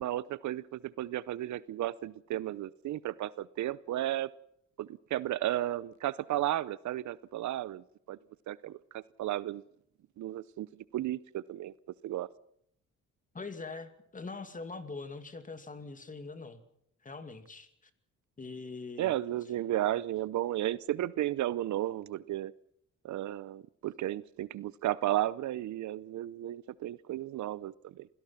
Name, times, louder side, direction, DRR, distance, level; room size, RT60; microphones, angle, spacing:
voice 1, 0.0-4.3 4.8-8.2 8.5-9.6 10.2-11.7 12.0-12.3 19.0-22.5 23.0-28.1, right 13 dB, 70° right, 20 dB, 0.7 m, -34 dB
voice 2, 13.3-16.6 17.0-17.7 18.4-19.1, left 3 dB, 25° left, 9 dB, 2.5 m, -43 dB
26.5 x 17.0 x 5.8 m, 0.73 s
cardioid pair, 90°, 30 cm